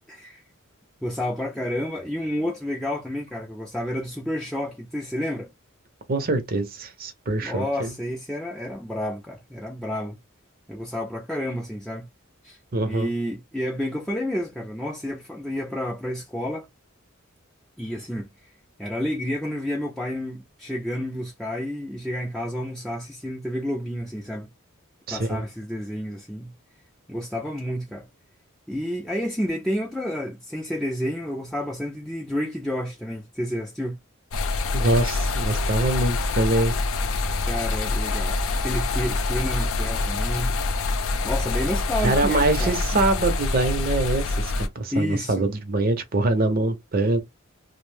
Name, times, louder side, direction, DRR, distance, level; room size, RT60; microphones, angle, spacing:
voice 1, 0.1-0.4 1.0-5.5 7.4-10.2 10.7-12.1 12.4-12.6 12.9-16.7 17.8-18.5 18.8-24.5 25.1-26.5 27.1-28.0 28.7-34.0 37.5-38.4 38.6-40.6 41.2-42.7 44.9-45.4, equal, ahead, 0.4 m, -30 dB
voice 2, 6.1-7.9 12.7-13.1 25.1-25.4 34.7-36.7 42.0-47.2, right 2 dB, 45° right, 0.6 m, -24 dB
sound 1, 34.3-44.7, left 3 dB, 75° left, 0.5 m, -25 dB
2.5 x 2.0 x 3.2 m
head